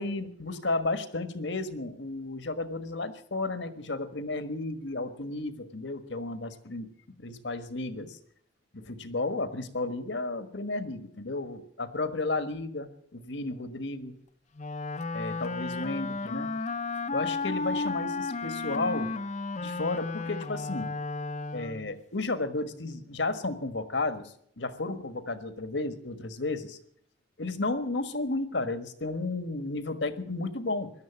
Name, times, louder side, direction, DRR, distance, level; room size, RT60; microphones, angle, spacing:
voice 1, 0.0-6.9 7.2-8.2 8.7-14.1 15.1-16.5 17.1-19.1 19.6-20.9 21.5-26.8 27.4-30.9, left 2 dB, 75° left, 11 dB, 1.5 m, -33 dB
Wind instrument woodwind instrument, 14.6-22.0, left 3 dB, 40° left, 0.7 m, -33 dB
17.0 x 12.0 x 7.1 m, 0.65 s
head